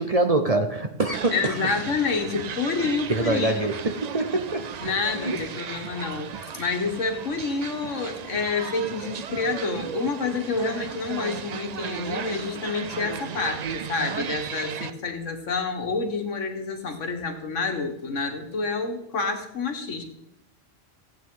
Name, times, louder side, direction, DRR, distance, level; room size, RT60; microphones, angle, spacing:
voice 1, 0.0-1.3 3.1-4.7 5.1-5.4, right 2 dB, 35° right, 6 dB, 0.7 m, -24 dB
sound 1, 1.1-14.9, right 8 dB, 65° right, 0.4 m, -36 dB
voice 2, 1.3-3.7 4.8-20.0, left 4 dB, 75° left, 5 dB, 1.7 m, -28 dB
15.5 x 8.7 x 3.8 m, 0.81 s
omnidirectional pair, 1.3 m